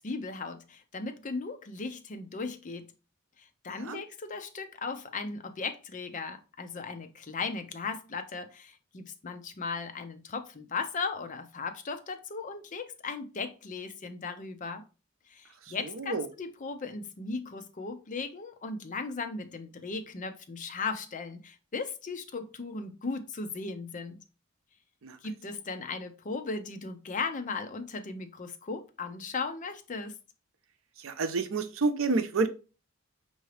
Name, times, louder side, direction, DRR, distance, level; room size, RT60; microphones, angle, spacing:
voice 1, 0.0-2.9 3.4-14.8 15.3-24.2 25.2-30.2, left 4 dB, 35° left, 0.5 m, -37 dB
voice 2, 3.7-4.0 15.7-16.3 25.0-25.2 31.0-32.5, right 3 dB, 70° right, 0.5 m, -29 dB
5.6 x 2.7 x 3.2 m
head